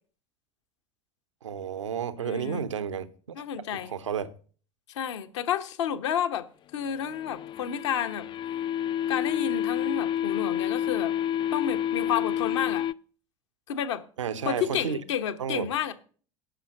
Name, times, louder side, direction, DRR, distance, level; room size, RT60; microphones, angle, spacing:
voice 1, 1.4-3.1 3.7-4.3 14.2-15.0 15.4-15.7, right 8 dB, 75° right, 0.9 m, -31 dB
voice 2, 2.2-2.7 3.3-3.9 4.9-6.5 6.7-8.2 9.1-11.1 11.5-12.9 13.7-14.0 14.4-15.9, left 9 dB, 65° left, 1.1 m, -30 dB
sound 1, 6.9-12.9, left 10 dB, 30° left, 0.4 m, -29 dB
11.5 x 5.7 x 7.5 m
figure-of-eight pair, 70°, 16 cm